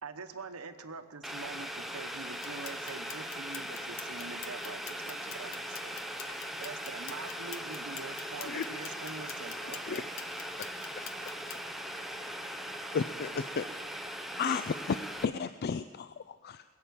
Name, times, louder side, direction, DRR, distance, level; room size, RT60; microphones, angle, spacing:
voice 1, 0.0-6.0 6.6-10.0, right 4 dB, 90° right, 9 dB, 1.0 m, -45 dB
Boiling, 1.2-15.2, equal, ahead, 0.8 m, -40 dB
sound 1, 2.3-11.6, left 9 dB, 65° left, 1.0 m, -48 dB
voice 2, 6.4-6.5, left 1 dB, 30° left, -3 dB, 5.2 m, -64 dB
voice 3, 12.9-13.6 14.4-14.7 15.2-16.6, left 6 dB, 45° left, 11 dB, 0.4 m, -33 dB
21.5 x 7.4 x 8.3 m, 1.5 s
head